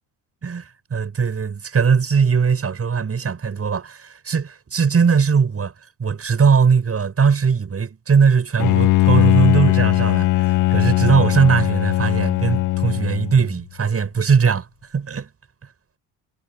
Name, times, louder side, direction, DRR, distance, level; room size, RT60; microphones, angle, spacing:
voice 1, 0.4-5.7 6.0-14.7 14.9-15.3, right 6 dB, 35° right, 7.7 m, -19 dB
Bowed string instrument, 8.6-13.5, left 18 dB, 50° left, 0.5 m, -19 dB
hypercardioid pair, 65°, 42 cm